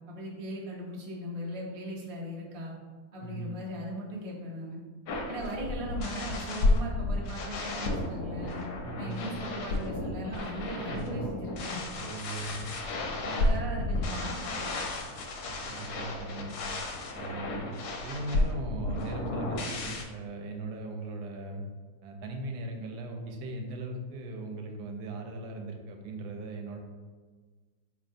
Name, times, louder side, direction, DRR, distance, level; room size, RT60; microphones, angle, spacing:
voice 1, 0.1-2.7 3.1-4.8 5.3-8.6 9.0-11.8 13.3-14.7, equal, 50° right, -4 dB, 0.4 m, -38 dB
voice 2, 3.2-3.6 8.8-9.3 10.9-11.2 12.0-12.7 13.1-13.6 15.7-16.5 17.1-17.7 18.0-21.6 22.0-26.8, right 2 dB, 80° right, 3 dB, 1.1 m, -39 dB
sound 1, 5.1-20.0, left 2 dB, 80° left, 1.1 m, -32 dB
4.1 x 3.1 x 2.6 m, 1.5 s
omnidirectional pair, 1.7 m